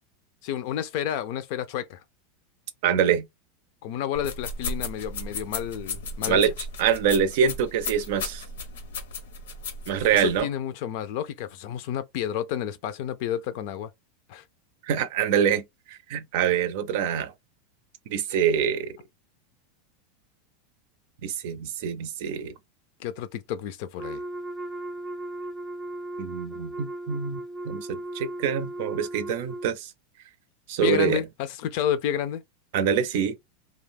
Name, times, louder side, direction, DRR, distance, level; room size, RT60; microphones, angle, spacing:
voice 1, 0.4-2.0 3.8-6.4 10.1-13.9 14.3-14.4 23.0-24.2 30.8-32.4, left 10 dB, 60° left, 0.5 m, -30 dB
voice 2, 2.8-3.3 6.3-6.5 6.8-8.4 9.9-10.5 14.9-15.6 15.9-17.3 18.1-19.0 21.2-22.6 26.2-29.9 30.7-31.2 32.7-33.3, right 8 dB, 65° right, 0.5 m, -25 dB
sound 1, 4.1-10.4, left 3 dB, 90° left, 0.9 m, -35 dB
Wind instrument woodwind instrument, 24.0-29.7, right 1 dB, 5° right, 0.3 m, -36 dB
2.3 x 2.1 x 3.4 m
supercardioid pair, 140°, 0 cm